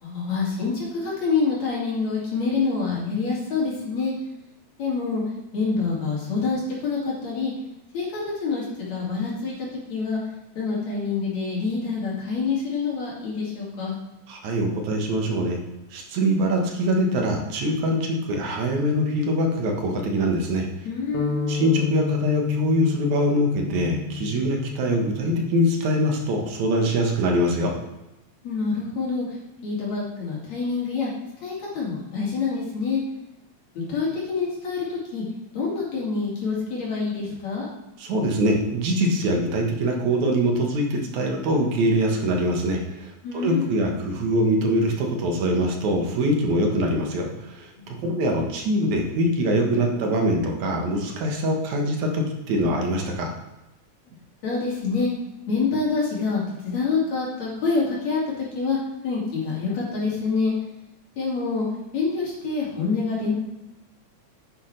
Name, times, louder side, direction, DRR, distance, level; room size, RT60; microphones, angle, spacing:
voice 1, 0.0-4.1 4.8-5.2 5.5-7.5 7.9-10.2 10.6-14.0 20.8-21.5 28.4-31.1 31.4-33.0 33.8-35.2 35.5-37.7 43.2-43.8 47.8-48.0 54.4-55.1 55.5-58.8 59.0-60.5 61.2-61.7 61.9-63.3, left 4 dB, 65° left, -5 dB, 3.5 m, -26 dB
voice 2, 14.3-15.6 15.9-20.7 21.5-27.7 38.0-53.3, equal, 75° right, 1 dB, 2.8 m, -23 dB
sound 1, 21.1-25.4, left 6 dB, 85° left, 2.6 m, -30 dB
9.7 x 8.9 x 3.3 m, 0.96 s
omnidirectional pair, 3.3 m